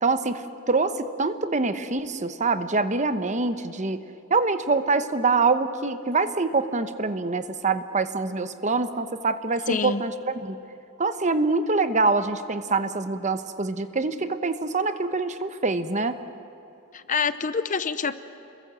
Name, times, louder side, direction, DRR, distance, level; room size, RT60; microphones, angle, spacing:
voice 1, 0.0-4.0 4.3-10.6 11.0-16.2, right 3 dB, 30° right, 10 dB, 1.0 m, -25 dB
voice 2, 9.7-10.0 16.9-18.1, left 5 dB, 35° left, 13 dB, 0.7 m, -26 dB
29.0 x 22.0 x 7.6 m, 2.8 s
head